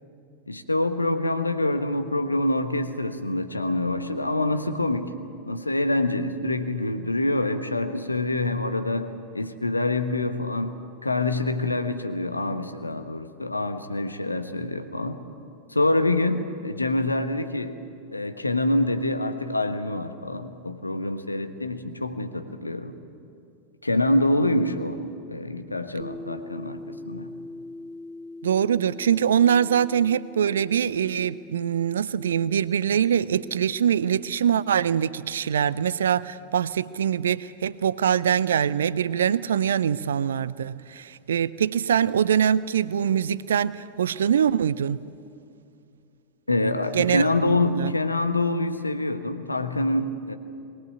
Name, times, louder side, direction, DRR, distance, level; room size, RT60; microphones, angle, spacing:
voice 1, 0.5-5.1 5.5-10.7 11.0-15.2 15.7-17.8 18.1-22.9 23.8-25.0 25.3-26.8 27.0-27.3 46.5-50.4, left 2 dB, 80° left, 8 dB, 1.3 m, -26 dB
sound 1, 26.0-34.8, left 2 dB, 15° right, 1.5 m, -43 dB
voice 2, 28.4-45.0 46.9-47.9, right 8 dB, 65° right, 17 dB, 0.5 m, -23 dB
22.0 x 18.0 x 8.8 m, 2.5 s
figure-of-eight pair, 90°, 0 cm